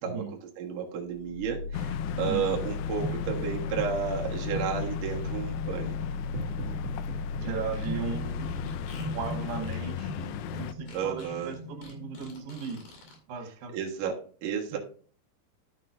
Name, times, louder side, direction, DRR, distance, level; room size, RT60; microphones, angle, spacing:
voice 1, 0.0-0.4 2.1-2.5 6.5-6.8 7.4-8.5 9.1-12.8 13.3-13.7, right 6 dB, 85° right, 5 dB, 3.2 m, -37 dB
voice 2, 0.6-5.9 10.9-11.5 13.7-14.1 14.4-14.8, right 7 dB, 60° right, -1 dB, 2.6 m, -32 dB
sound 1, 1.1-13.0, left 2 dB, 45° right, 1.8 m, -36 dB
sound 2, 1.7-10.7, left 14 dB, 90° left, 2.7 m, -37 dB
Fart, 7.6-13.2, left 2 dB, 65° left, 4.2 m, -49 dB
12.0 x 7.5 x 2.5 m, 0.43 s
omnidirectional pair, 4.7 m